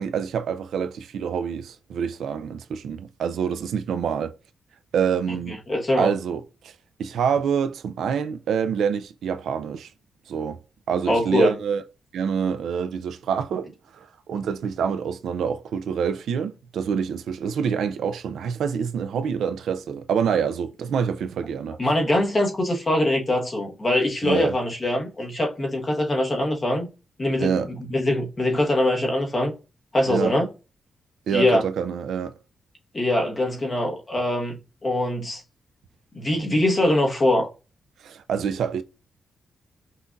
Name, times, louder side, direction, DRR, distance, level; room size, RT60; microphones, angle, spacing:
voice 1, 0.0-4.3 4.9-5.6 6.0-9.9 10.3-10.6 10.9-11.8 12.1-21.8 24.2-24.6 27.4-27.7 30.1-30.4 31.3-32.4 38.0-38.8, right 7 dB, 80° right, 0.3 m, -26 dB
voice 2, 5.7-6.1 11.1-11.5 21.8-26.9 27.2-29.5 29.9-30.5 31.3-31.6 32.9-34.6 34.8-35.4 36.1-37.5, left 1 dB, 25° left, 1.1 m, -22 dB
5.6 x 2.4 x 2.5 m
wide cardioid pair, 135°, 0 cm